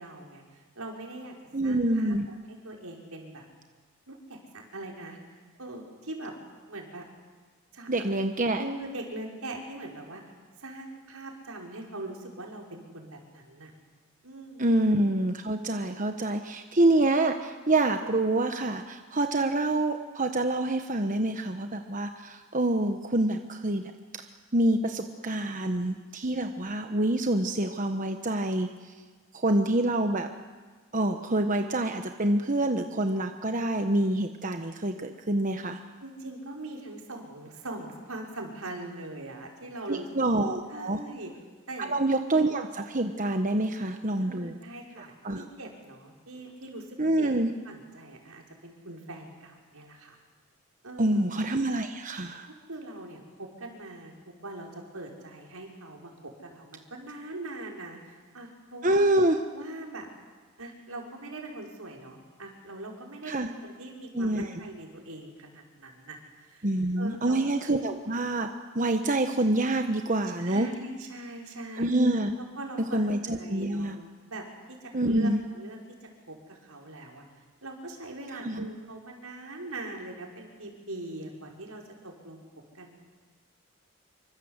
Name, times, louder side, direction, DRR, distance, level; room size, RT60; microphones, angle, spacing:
voice 1, 0.0-1.4 1.6-3.5 4.1-6.3 6.7-7.0 7.7-7.9 8.5-10.2 10.6-13.7 14.2-14.7 36.0-40.1 40.7-41.3 41.7-41.9 44.2-47.3 47.7-50.2 50.8-51.3 52.5-59.1 59.5-60.1 60.6-66.7 67.0-67.4 70.4-71.9 72.4-74.0 74.3-77.3 77.6-82.4 82.7-82.9, right 2 dB, 80° right, 0 dB, 5.3 m, -42 dB
voice 2, 1.5-2.3 7.9-8.6 14.6-23.8 24.1-24.2 24.5-28.7 29.3-30.3 30.9-35.8 39.9-41.0 41.8-44.6 45.0-45.4 47.0-47.5 51.0-52.5 58.8-59.4 63.3-63.5 64.1-64.5 66.6-68.5 68.7-70.7 71.8-72.3 72.9-74.0 74.9-75.4 78.4-78.7, right 1 dB, 35° right, 6 dB, 1.2 m, -26 dB
26.5 x 25.0 x 8.1 m, 1.4 s
head